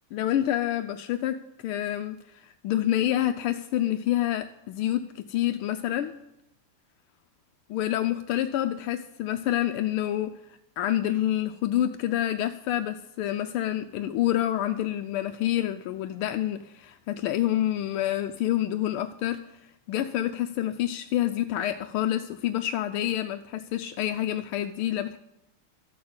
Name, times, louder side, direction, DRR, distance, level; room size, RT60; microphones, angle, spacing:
voice 1, 0.1-1.4 1.6-6.1 7.7-10.4 10.8-19.4 19.9-25.2, left 12 dB, 80° left, 8 dB, 1.5 m, -27 dB
13.5 x 6.4 x 8.5 m, 0.88 s
omnidirectional pair, 2.4 m